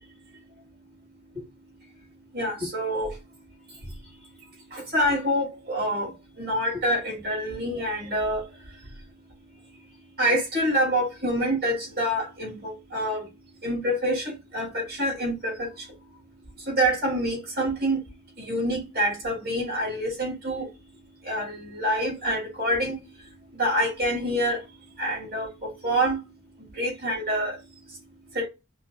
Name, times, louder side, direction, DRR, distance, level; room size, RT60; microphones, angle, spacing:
voice 1, 2.3-3.1 4.7-6.1 6.4-8.4 10.2-13.2 13.6-15.7 16.7-18.0 18.4-20.7 21.3-22.9 23.6-24.6 25.0-26.2 26.8-27.5 28.3-28.5, equal, 45° right, 2.9 m, -26 dB
5.3 x 2.0 x 3.9 m
head